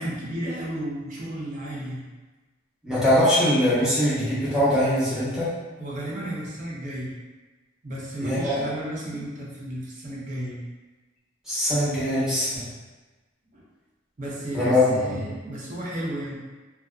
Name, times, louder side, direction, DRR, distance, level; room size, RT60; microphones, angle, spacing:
voice 1, 0.0-2.0 5.8-7.1 7.8-10.6 13.5-13.7 14.2-16.3, right 1 dB, 35° right, -5 dB, 0.5 m, -33 dB
voice 2, 2.8-5.5 8.2-8.6 11.5-12.6 14.5-15.2, left 1 dB, 5° right, -12 dB, 0.8 m, -22 dB
2.6 x 2.2 x 2.3 m, 1.2 s
head